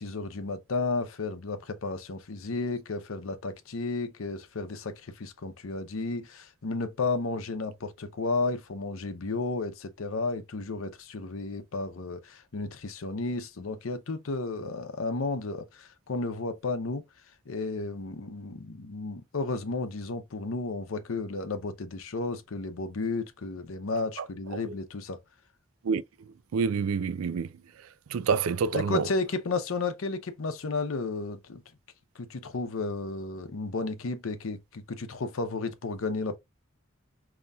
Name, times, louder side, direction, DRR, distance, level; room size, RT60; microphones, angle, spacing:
voice 1, 0.0-17.0 17.5-25.2 28.7-31.6 32.2-36.4, left 3 dB, 80° left, 0.7 m, -33 dB
voice 2, 25.8-27.5 28.1-29.1, right 5 dB, 85° right, 0.4 m, -28 dB
5.4 x 2.9 x 2.3 m
head